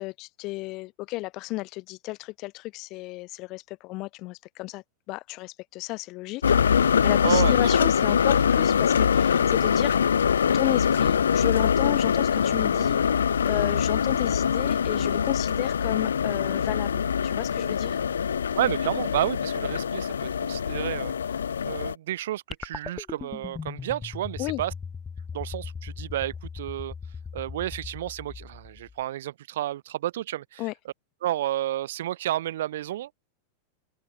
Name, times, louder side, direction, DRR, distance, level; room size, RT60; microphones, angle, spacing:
voice 1, 0.0-10.2 10.5-13.0 13.4-18.0 24.4-24.6 30.6-30.7, left 21 dB, 40° left, 3.6 m, -33 dB
sound 1, 6.4-21.9, left 7 dB, 70° left, 1.9 m, -23 dB
voice 2, 7.2-7.7 18.5-21.4 21.6-24.7 25.3-26.9 27.3-30.6 31.2-33.3, right 13 dB, 55° right, 1.1 m, -31 dB
sound 2, 22.5-29.0, left 5 dB, 15° left, 1.8 m, -39 dB
figure-of-eight pair, 90°, 0 cm